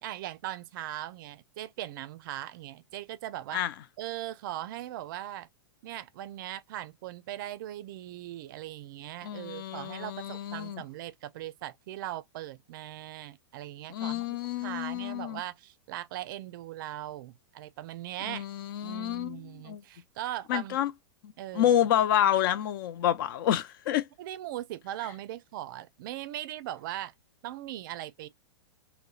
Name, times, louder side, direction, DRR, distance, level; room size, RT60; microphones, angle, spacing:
voice 1, 0.0-3.6 4.0-5.5 5.8-18.5 18.8-20.8 21.4-21.8 24.2-27.1 27.4-28.3, right 13 dB, 50° right, 0.4 m, -39 dB
voice 2, 9.2-10.8 13.9-15.4 18.3-19.8 20.5-20.9 21.2-24.1, left 11 dB, 55° left, 0.4 m, -28 dB
2.7 x 2.0 x 2.3 m
supercardioid pair, 155°, 14 cm